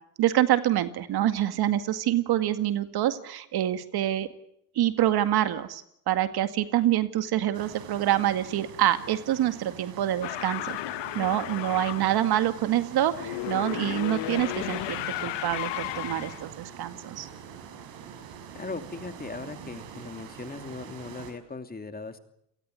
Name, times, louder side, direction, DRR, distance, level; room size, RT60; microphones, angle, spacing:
voice 1, 0.2-4.3 4.8-10.8 11.1-17.3, right 12 dB, 55° right, 10 dB, 2.1 m, -26 dB
sound 1, 7.5-21.3, right 8 dB, 70° right, 5.6 m, -44 dB
sound 2, 10.2-12.1 13.1-16.4, left 17 dB, 65° left, 1.2 m, -34 dB
voice 2, 18.5-22.2, left 3 dB, 20° left, 8 dB, 2.8 m, -38 dB
29.0 x 19.0 x 8.4 m, 0.74 s
supercardioid pair, 90°, 44 cm